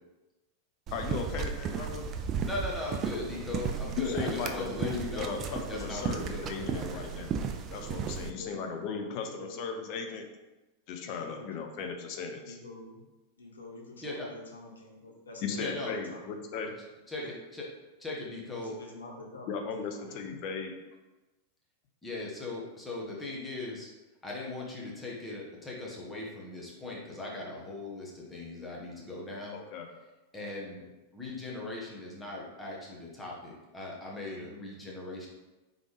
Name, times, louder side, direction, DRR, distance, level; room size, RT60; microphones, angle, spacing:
voice 1, 0.9-2.1 4.0-7.4 7.7-10.2 10.9-12.6 15.4-16.7 19.5-20.7 29.5-29.9, left 5 dB, 45° left, 4 dB, 0.6 m, -37 dB
sound 1, 0.9-8.3, right 6 dB, 30° right, 0.3 m, -35 dB
voice 2, 2.4-5.4 5.7-7.1 14.0-14.3 15.6-16.0 17.1-17.7 18.0-18.8 22.0-23.9 24.2-29.6 30.3-30.8 31.1-35.3, left 2 dB, 10° left, -4 dB, 1.1 m, -39 dB
voice 3, 8.2-8.7 9.1-9.5 11.0-11.5 12.4-13.1 13.4-16.4 17.2-17.3 18.5-20.4, left 2 dB, 70° left, -1 dB, 0.9 m, -47 dB
3.9 x 3.3 x 3.3 m, 1.1 s
figure-of-eight pair, 90°, 0 cm